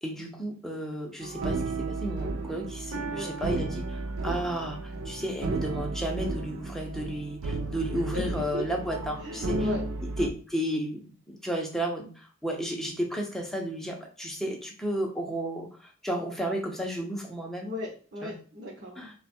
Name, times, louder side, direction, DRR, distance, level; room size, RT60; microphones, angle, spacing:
voice 1, 0.0-9.7 10.2-17.7 18.2-18.3 19.0-19.1, right 1 dB, ahead, 1 dB, 0.6 m, -33 dB
sound 1, 1.2-10.3, right 2 dB, 85° right, 0.5 m, -33 dB
voice 2, 9.2-9.9 17.6-19.1, equal, 45° right, -4 dB, 0.8 m, -36 dB
3.4 x 2.3 x 4.2 m, 0.40 s
head